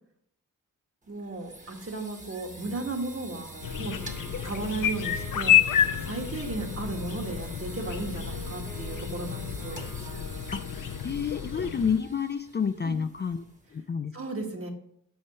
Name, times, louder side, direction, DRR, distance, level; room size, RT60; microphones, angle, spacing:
sound 1, 1.0-13.8, right 2 dB, 20° right, 1.2 m, -46 dB
voice 1, 1.1-3.9 4.4-5.5 6.0-9.9 12.8-13.0 14.1-14.7, right 3 dB, 40° right, 2 dB, 1.4 m, -35 dB
Wind instrument woodwind instrument, 3.5-11.4, right 1 dB, 75° right, 1.8 m, -47 dB
sound 2, 3.6-12.0, left 10 dB, 70° left, 0.6 m, -29 dB
voice 2, 10.5-13.4 13.7-14.2, left 6 dB, 30° left, 8 dB, 0.4 m, -30 dB
7.1 x 5.1 x 4.1 m, 0.72 s
cardioid pair, 55°, 34 cm